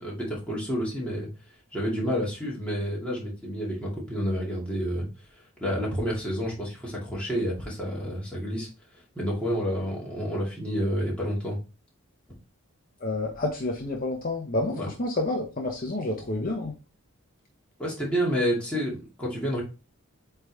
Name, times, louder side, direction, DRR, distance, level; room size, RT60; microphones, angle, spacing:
voice 1, 0.0-1.3 1.7-5.1 5.6-8.7 9.1-11.6 14.7-14.9 17.8-19.6, equal, 5° left, -5 dB, 2.4 m, -29 dB
voice 2, 13.0-16.7, left 2 dB, 40° left, 1 dB, 0.9 m, -29 dB
8.0 x 3.5 x 3.5 m, 0.31 s
head